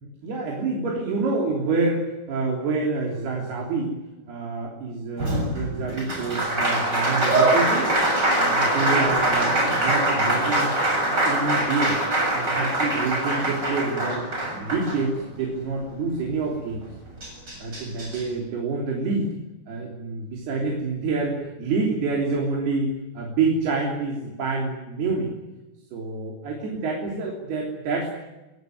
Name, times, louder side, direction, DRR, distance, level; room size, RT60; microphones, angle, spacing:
voice 1, 0.2-3.9 4.3-7.9 8.4-10.7 11.1-12.0 12.3-14.3 14.6-16.8 17.6-19.3 19.7-25.3 25.9-28.1, right 3 dB, 80° right, -1 dB, 5.4 m, -27 dB
Applause, 5.2-15.4 16.8-16.9 17.2-18.2, right 1 dB, 25° right, 7.7 m, -23 dB
27.0 x 17.5 x 9.3 m, 1.1 s
omnidirectional pair, 4.4 m